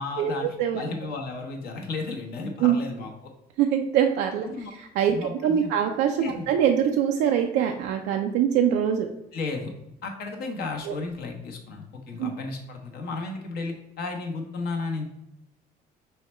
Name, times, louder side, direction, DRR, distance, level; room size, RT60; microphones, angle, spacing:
voice 1, 0.0-0.5 0.7-3.3 4.4-4.7 5.1-5.7 6.2-6.5 9.3-9.7 10.0-15.1, left 3 dB, 65° left, 2 dB, 1.0 m, -33 dB
voice 2, 3.6-9.1 10.9-11.0 12.2-12.3, right 9 dB, 90° right, 3 dB, 0.4 m, -23 dB
5.5 x 2.2 x 4.2 m, 0.83 s
cardioid pair, 110°, 17 cm